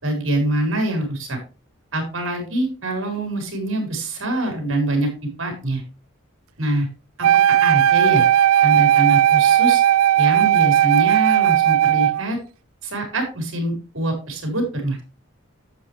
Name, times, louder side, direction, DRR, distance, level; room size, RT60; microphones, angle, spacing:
voice 1, 0.0-1.4 1.9-5.1 5.4-5.8 6.6-6.9 7.2-8.2 8.6-9.8 10.2-12.4 12.8-15.0, right 1 dB, 70° right, 3 dB, 4.5 m, -24 dB
Wind instrument woodwind instrument, 7.2-12.3, right 11 dB, 85° right, 0.3 m, -16 dB
11.5 x 8.0 x 3.3 m, 0.32 s
head